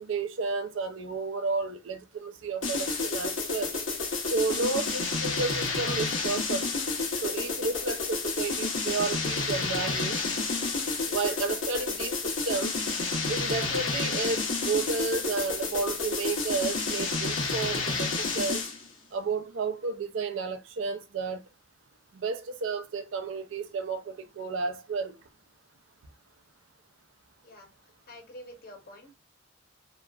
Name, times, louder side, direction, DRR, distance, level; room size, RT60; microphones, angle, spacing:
voice 1, 0.0-3.7 4.3-6.7 7.2-10.2 11.1-12.8 13.3-18.6 19.1-21.4 22.1-25.1, right 4 dB, 70° right, 0.5 m, -32 dB
sound 1, 2.6-18.8, left 3 dB, 90° left, 0.9 m, -30 dB
voice 2, 28.1-29.1, left 1 dB, 50° left, 0.8 m, -47 dB
2.9 x 2.3 x 2.3 m
head